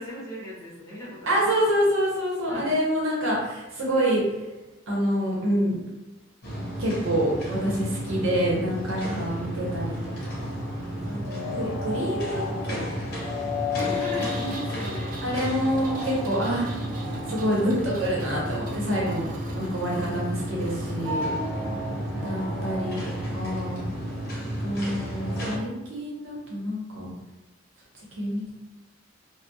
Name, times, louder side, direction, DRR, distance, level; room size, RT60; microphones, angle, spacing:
voice 1, 0.0-1.5 2.5-2.8 9.0-9.3 11.1-11.7 13.7-15.2 20.0-20.2 21.6-22.6, equal, 15° left, -8 dB, 0.7 m, -38 dB
voice 2, 1.3-4.5 4.9-5.8 6.8-10.6 11.0-12.8 15.2-16.7 17.3-19.3 19.5-21.3 22.2-23.8 24.4-27.1 28.1-28.5, equal, 90° right, -4 dB, 0.9 m, -27 dB
sound 1, 6.4-25.6, left 1 dB, 50° left, 0.7 m, -31 dB
Engine, 13.8-21.3, right 3 dB, 45° right, 0.3 m, -44 dB
2.2 x 2.1 x 2.6 m, 1.1 s
head